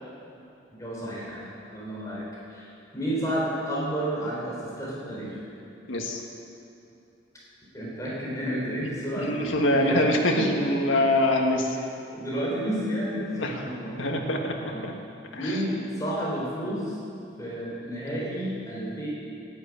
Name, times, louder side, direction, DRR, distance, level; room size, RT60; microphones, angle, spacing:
voice 1, 0.7-2.3 2.5-5.4 7.7-10.7 12.1-14.0 14.5-14.8 15.3-17.0 17.4-19.1, equal, 15° left, -6 dB, 3.7 m, -31 dB
voice 2, 5.9-6.2 9.2-11.8 13.4-13.6 14.0-14.5 14.8-14.9 15.3-15.6, left 1 dB, 85° left, 1 dB, 1.7 m, -24 dB
11.0 x 10.5 x 8.7 m, 2.7 s
head